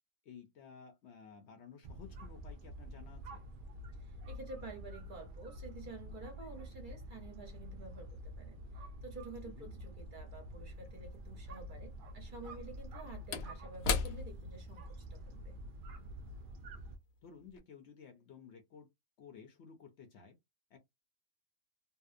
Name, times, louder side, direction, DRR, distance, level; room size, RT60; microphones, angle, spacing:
voice 1, 0.2-3.4 9.4-9.7 17.2-18.9 19.2-20.4 20.7-20.8, left 6 dB, 65° left, 0.8 m, -54 dB
sound 1, 1.8-17.0, equal, 75° right, 0.4 m, -48 dB
voice 2, 4.0-15.6, right 3 dB, 45° right, 0.8 m, -50 dB
Slam / Wood, 10.9-11.0 12.4-17.1 17.4-17.6, left 5 dB, 90° left, 1.0 m, -40 dB
2.6 x 2.0 x 2.4 m
omnidirectional pair, 1.4 m